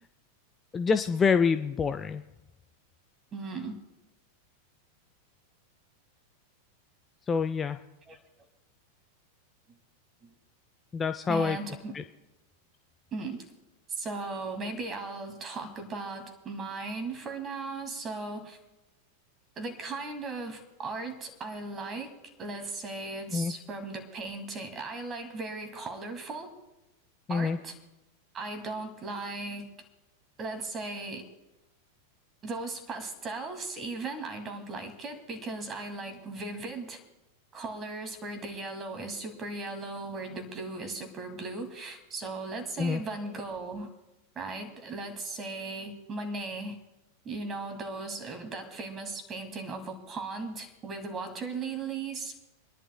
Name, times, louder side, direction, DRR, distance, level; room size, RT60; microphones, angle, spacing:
voice 1, 0.7-2.3 7.3-7.8 10.9-11.6 11.9-12.0 23.3-23.5 27.3-27.6 42.8-43.0, left 5 dB, 20° left, 9 dB, 0.4 m, -26 dB
voice 2, 3.3-3.8 8.1-8.2 10.2-10.3 11.3-11.9 13.1-13.5 13.9-18.6 19.6-26.5 27.3-27.7 28.3-29.7 30.4-31.2 32.4-37.0 37.5-43.9 44.4-46.8 47.2-52.3, right 3 dB, 25° right, 6 dB, 2.2 m, -37 dB
30.0 x 11.0 x 2.2 m, 1.0 s
figure-of-eight pair, 90°, 0 cm